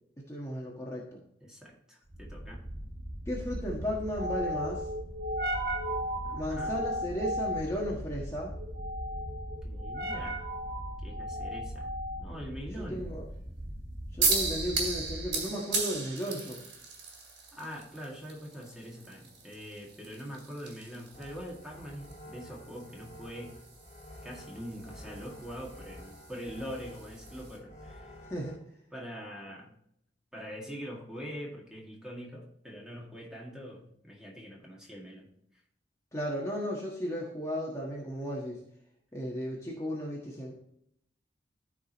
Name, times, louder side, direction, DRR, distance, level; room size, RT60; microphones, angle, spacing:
voice 1, 0.2-1.2 3.3-4.9 6.3-8.5 12.9-13.2 14.1-16.6 28.3-28.6 36.1-38.6 39.1-40.5, equal, 15° left, -4 dB, 1.3 m, -35 dB
voice 2, 1.4-2.6 6.2-6.8 9.6-10.5 11.0-11.9 12.2-13.1 17.5-23.6 24.2-28.1 28.9-29.8 30.3-35.6, equal, 5° right, -3 dB, 1.9 m, -43 dB
sound 1, 2.1-15.5, equal, 55° right, 1.6 m, -36 dB
sound 2, 14.2-27.6, right 4 dB, 75° right, 3.0 m, -37 dB
sound 3, 21.1-28.5, left 1 dB, 35° left, 2.0 m, -50 dB
14.0 x 5.0 x 3.0 m, 0.73 s
head